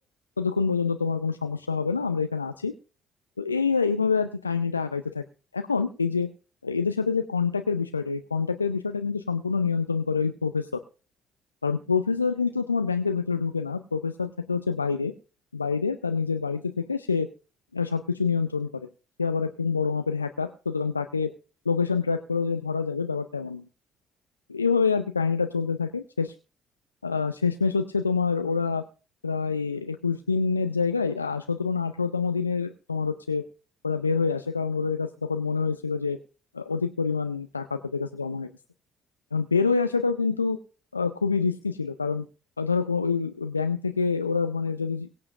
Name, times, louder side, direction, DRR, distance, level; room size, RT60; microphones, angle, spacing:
voice 1, 0.4-2.7 3.4-5.2 5.5-6.3 6.6-10.7 11.6-15.1 15.5-17.3 17.7-18.7 19.2-21.3 21.7-23.6 24.5-26.3 27.0-28.8 29.2-33.4 33.8-36.2 36.5-38.5 39.3-40.6 40.9-42.2 42.6-45.1, left 5 dB, 90° left, 8 dB, 0.4 m, -26 dB
22.5 x 7.6 x 2.5 m, 0.36 s
figure-of-eight pair, 45°, 0 cm